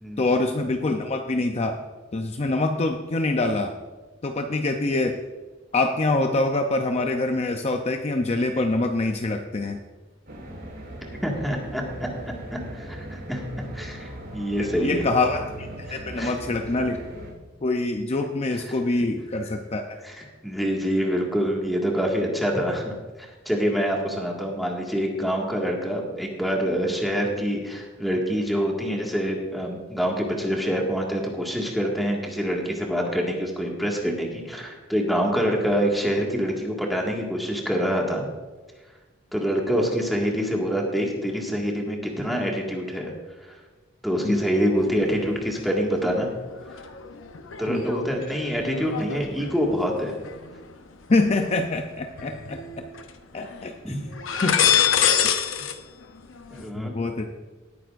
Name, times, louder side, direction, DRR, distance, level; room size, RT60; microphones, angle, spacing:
voice 1, 0.2-1.8 2.1-3.7 4.2-5.2 5.7-9.8 14.7-17.0 17.6-20.0 44.2-44.4 47.7-47.8 51.1-52.9 53.3-53.9 54.4-54.6 56.8-57.3, left 2 dB, 35° left, 5 dB, 0.6 m, -25 dB
sound 1, 10.3-17.3, right 1 dB, 65° right, 3.6 m, -39 dB
voice 2, 11.2-15.0 15.9-16.3 18.7-18.8 20.0-38.3 39.3-43.1 43.4-43.5 44.0-46.3 47.6-50.2 53.8-54.0 56.5-56.9, equal, ahead, -2 dB, 1.8 m, -26 dB
sound 2, 44.7-45.6 46.0-51.6 52.1-53.1 53.4-53.6 54.1-55.7 56.0-56.7, left 8 dB, 85° left, 0.7 m, -27 dB
18.5 x 9.2 x 2.5 m, 1.3 s
head